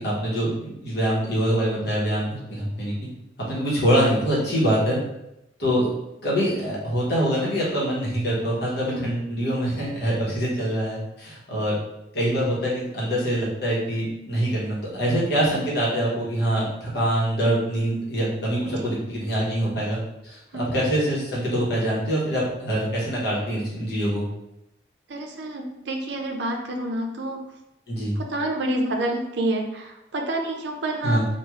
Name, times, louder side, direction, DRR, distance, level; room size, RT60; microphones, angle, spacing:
voice 1, 0.0-2.9 3.5-5.0 5.6-5.9 6.2-11.8 12.1-24.2 27.9-28.1 31.0-31.3, equal, 55° left, -6 dB, 1.1 m, -24 dB
voice 2, 25.1-27.4 28.2-31.2, right 1 dB, 65° right, 3 dB, 0.5 m, -28 dB
3.1 x 2.3 x 3.5 m, 0.87 s
head